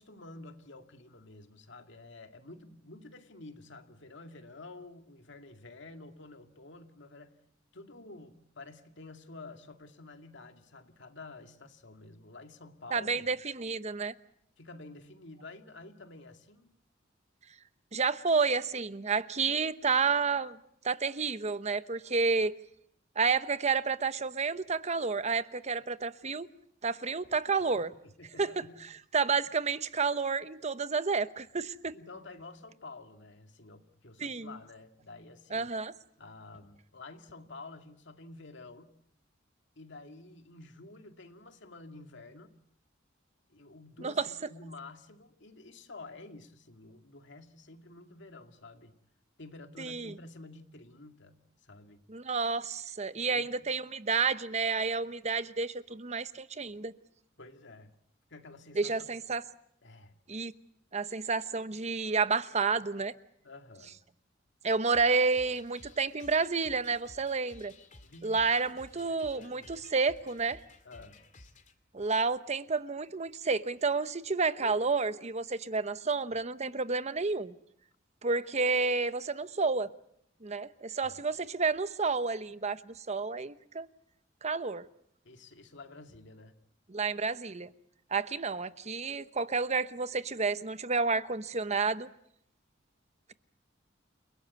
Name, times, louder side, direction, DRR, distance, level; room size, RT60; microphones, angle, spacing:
voice 1, 0.0-7.4 7.7-13.3 14.6-16.8 28.0-28.9 29.4-29.5 31.9-35.7 36.2-38.9 39.8-42.6 43.5-49.0 49.4-52.0 53.3-53.5 57.4-57.9 58.3-59.1 59.8-60.2 63.4-64.0 68.0-68.4 69.0-69.9 70.8-71.2 81.0-81.2 85.2-86.5, left 2 dB, 65° left, 2.3 m, -50 dB
voice 2, 12.9-14.1 17.9-20.6 20.8-22.5 23.2-26.5 26.8-27.9 28.4-28.5 29.1-31.9 34.2-34.5 35.5-35.9 44.0-44.3 49.8-50.1 52.1-56.9 58.8-59.4 60.3-60.5 60.9-63.1 64.6-67.7 68.2-70.6 71.9-77.6 78.2-79.9 80.4-83.9 84.4-84.8 86.9-87.7 88.1-92.1, right 4 dB, 35° right, 0.9 m, -30 dB
sound 1, 64.9-71.7, left 2 dB, 40° left, 2.3 m, -55 dB
29.5 x 17.5 x 8.3 m
head